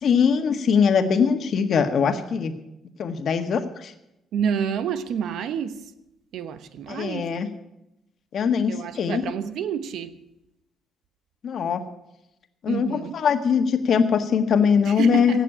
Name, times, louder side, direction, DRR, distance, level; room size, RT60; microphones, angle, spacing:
voice 1, 0.0-2.5 3.0-3.9 6.9-7.5 8.3-9.3 11.4-11.8 12.6-15.4, left 6 dB, 60° left, 1.5 m, -21 dB
voice 2, 4.3-5.9 6.3-7.3 8.7-10.2 12.7-13.2 14.8-15.4, right 8 dB, 80° right, 1.0 m, -29 dB
16.5 x 6.6 x 9.9 m
cardioid pair, 90°, 0 cm